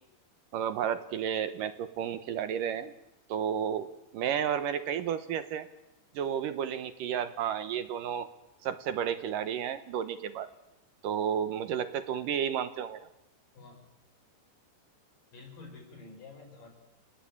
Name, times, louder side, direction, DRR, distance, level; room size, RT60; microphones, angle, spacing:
voice 1, 0.5-2.9 3.3-3.9 4.1-5.7 6.2-8.3 8.6-10.5 11.0-13.1, right 9 dB, 70° right, 11 dB, 2.1 m, -32 dB
voice 2, 13.5-13.9 15.3-16.7, left 3 dB, 50° left, 4 dB, 6.5 m, -49 dB
29.5 x 19.0 x 8.7 m, 0.95 s
omnidirectional pair, 4.9 m